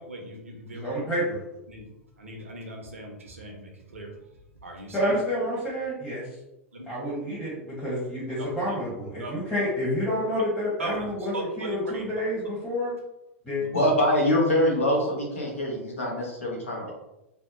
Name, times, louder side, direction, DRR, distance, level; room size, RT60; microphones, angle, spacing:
voice 1, 0.1-0.9 1.7-1.8 2.2-4.1 4.6-5.1 6.7-6.9 8.7-8.8 9.2-9.3 10.8-11.1 11.3-12.1, right 2 dB, 75° right, 1 dB, 0.6 m, -37 dB
voice 2, 0.7-1.4 4.9-6.2 6.9-13.0 13.4-13.6, equal, 10° left, -10 dB, 0.9 m, -29 dB
voice 3, 13.7-16.9, left 1 dB, 75° left, -2 dB, 0.9 m, -24 dB
2.7 x 2.1 x 2.5 m, 0.90 s
figure-of-eight pair, 95°, 7 cm